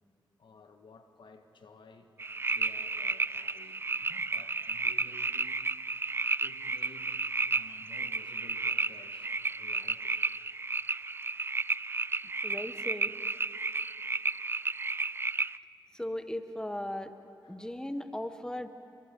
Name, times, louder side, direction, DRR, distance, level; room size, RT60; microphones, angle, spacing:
voice 1, 0.4-2.1 2.5-5.6 6.4-10.3 17.4-17.7, left 4 dB, 75° left, 6 dB, 1.6 m, -55 dB
sound 1, 2.2-15.6, right 3 dB, 30° right, 0.4 m, -32 dB
voice 2, 12.4-13.1 15.9-17.1 17.5-18.7, left 1 dB, 10° left, 8 dB, 1.4 m, -37 dB
29.5 x 22.5 x 5.5 m, 2.7 s
cardioid pair, 50°, 8 cm